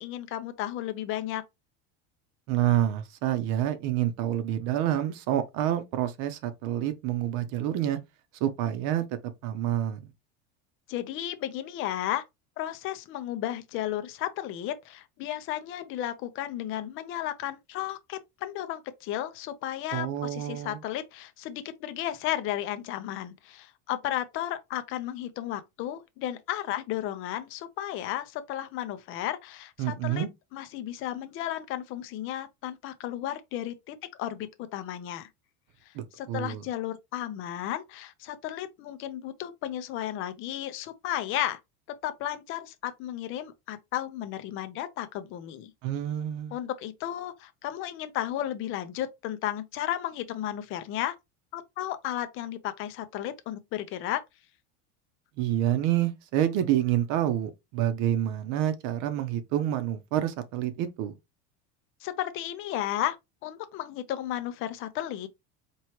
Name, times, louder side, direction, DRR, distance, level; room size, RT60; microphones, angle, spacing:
voice 1, 0.0-1.4 10.9-12.2 12.6-30.3 30.5-35.3 35.9-41.6 42.0-45.7 46.5-51.2 51.5-54.2 62.0-63.2 63.4-65.3, left 12 dB, 35° left, 0.6 m, -34 dB
voice 2, 2.5-8.0 8.4-9.1 9.4-10.0 19.9-20.8 29.8-30.3 35.9-36.6 45.8-46.6 55.4-61.2, right 12 dB, 55° right, 0.8 m, -28 dB
4.5 x 3.0 x 3.0 m
cardioid pair, 160°, 34 cm